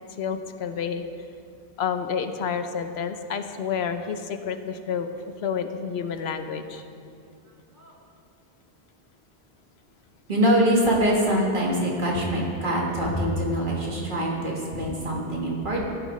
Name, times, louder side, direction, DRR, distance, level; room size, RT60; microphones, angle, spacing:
voice 1, 0.2-1.0 1.8-5.1 5.4-6.9, left 7 dB, 85° left, 8 dB, 0.9 m, -29 dB
voice 2, 10.3-15.8, equal, 55° right, -3 dB, 1.9 m, -24 dB
14.5 x 11.0 x 3.2 m, 2.4 s
omnidirectional pair, 1.0 m